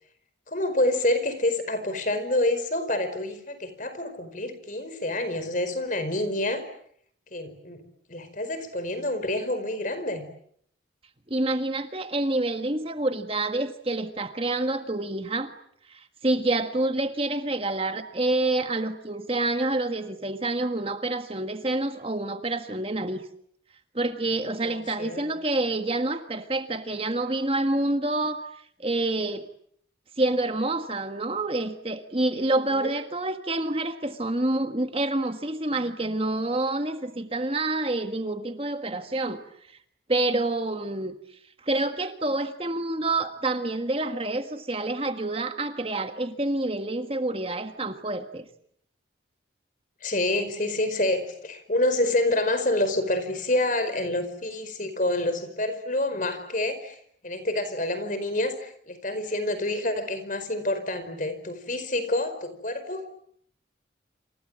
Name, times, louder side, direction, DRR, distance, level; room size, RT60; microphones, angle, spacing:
voice 1, 0.5-6.6 7.3-7.8 8.1-10.3 24.6-25.3 32.7-32.9 50.0-63.1, left 1 dB, 45° left, 11 dB, 4.8 m, -27 dB
voice 2, 11.3-15.5 15.9-23.2 23.9-28.4 28.8-29.5 30.2-39.4 40.1-41.1 41.6-48.4, right 2 dB, 30° right, 8 dB, 1.6 m, -27 dB
28.0 x 27.0 x 7.6 m, 0.66 s
head